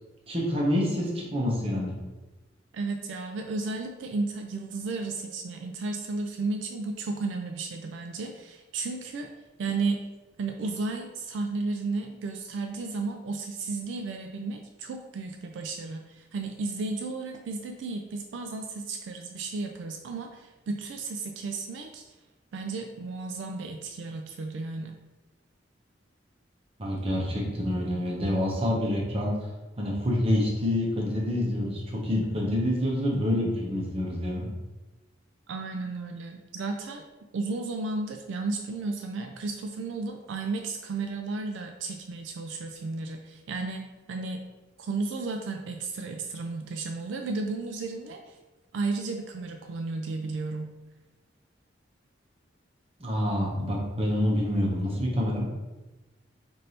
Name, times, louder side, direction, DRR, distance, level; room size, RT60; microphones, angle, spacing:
voice 1, 0.3-1.9 26.8-29.3 29.8-34.5 53.0-55.5, left 1 dB, 30° right, -3 dB, 0.9 m, -27 dB
voice 2, 2.7-9.3 9.6-10.0 10.4-22.0 22.5-25.0 35.5-37.0 37.3-44.4 44.8-48.4 48.7-50.7, right 3 dB, 75° right, 4 dB, 0.3 m, -33 dB
3.3 x 2.6 x 4.2 m, 1.1 s
head